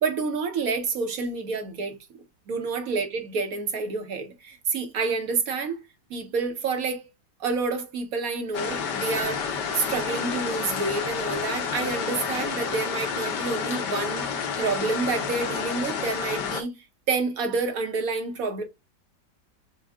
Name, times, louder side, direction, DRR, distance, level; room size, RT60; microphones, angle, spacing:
voice 1, 0.0-5.8 6.1-7.0 7.4-16.7 17.1-18.6, right 4 dB, 60° right, 1.3 m, -28 dB
sound 1, 8.5-16.6, left 6 dB, 75° left, 1.5 m, -30 dB
6.2 x 2.3 x 3.5 m
omnidirectional pair, 1.9 m